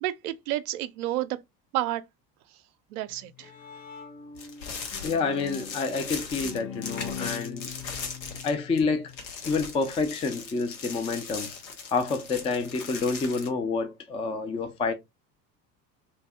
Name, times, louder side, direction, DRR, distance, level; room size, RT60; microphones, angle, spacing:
voice 1, 0.0-1.4 1.7-2.0 2.9-3.5, right 14 dB, 65° right, 0.6 m, -30 dB
Bowed string instrument, 3.1-9.2, left 6 dB, 35° left, 1.2 m, -42 dB
sound 1, 4.4-8.8 9.1-13.5, left 5 dB, 85° left, 0.9 m, -39 dB
voice 2, 5.0-7.7 8.4-9.1 9.5-11.5 11.9-14.9, left 4 dB, 15° left, 0.4 m, -28 dB
3.2 x 2.6 x 3.4 m
figure-of-eight pair, 70°, 50 cm